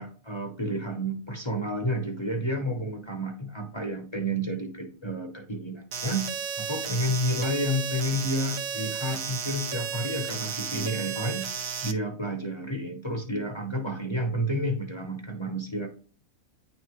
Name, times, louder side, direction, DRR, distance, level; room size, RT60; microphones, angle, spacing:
voice 1, 0.0-6.3 6.6-15.9, equal, 35° left, 2 dB, 0.5 m, -30 dB
sound 1, 5.9-11.9, right 7 dB, 65° right, 1.0 m, -33 dB
9.6 x 3.2 x 3.0 m, 0.41 s
omnidirectional pair, 1.5 m